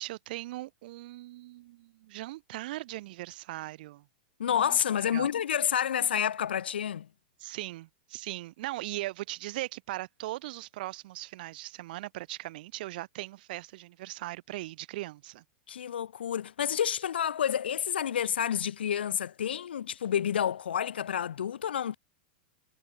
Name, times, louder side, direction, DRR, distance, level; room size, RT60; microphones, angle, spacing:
voice 1, 0.0-4.0 4.5-4.8 5.1-5.3 7.4-15.4, right 17 dB, 65° right, 1.4 m, -39 dB
voice 2, 4.4-7.1 15.7-22.0, left 9 dB, 85° left, 0.5 m, -29 dB
hypercardioid pair, 115°, 5 cm